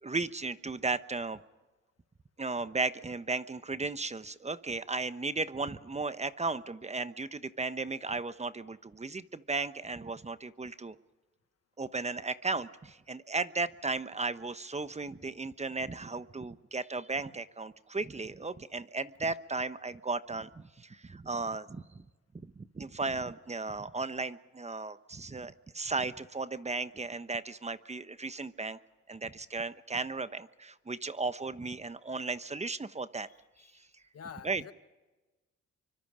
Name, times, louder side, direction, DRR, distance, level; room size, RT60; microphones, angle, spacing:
voice 1, 0.0-1.4 2.4-10.9 11.8-22.0 22.6-28.8 29.1-33.3 34.4-34.7, right 3 dB, 25° right, 13 dB, 1.1 m, -35 dB
voice 2, 33.3-34.7, left 7 dB, 55° left, 11 dB, 1.5 m, -49 dB
28.0 x 24.5 x 5.1 m, 1.2 s
supercardioid pair, 65°, 29 cm